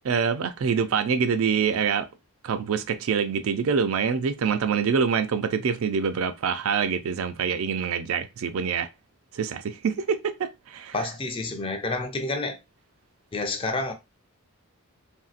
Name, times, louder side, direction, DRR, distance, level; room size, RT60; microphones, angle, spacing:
voice 1, 0.0-2.1 2.4-8.9 9.3-10.9, right 6 dB, 70° right, 0.4 m, -25 dB
voice 2, 10.9-12.6 13.3-13.9, left 2 dB, 25° left, 0.4 m, -29 dB
3.1 x 2.6 x 2.4 m
head